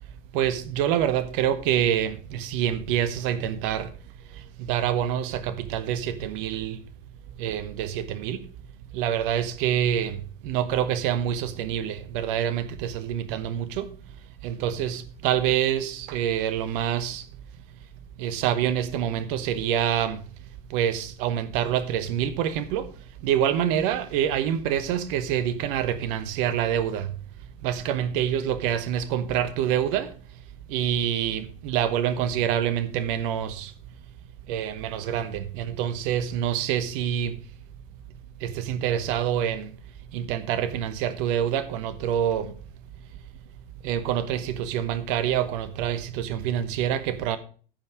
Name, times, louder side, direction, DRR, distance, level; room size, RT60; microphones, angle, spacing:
voice 1, 0.3-3.9 4.3-6.8 7.4-8.5 8.9-10.2 10.4-13.9 14.4-17.3 18.2-20.2 20.7-22.9 23.2-27.1 27.6-30.1 30.7-33.7 34.5-37.4 38.4-39.7 40.1-42.5 43.8-47.4, right 10 dB, 65° right, 1.1 m, -26 dB
14.0 x 5.5 x 4.9 m
hypercardioid pair, 85°, 29 cm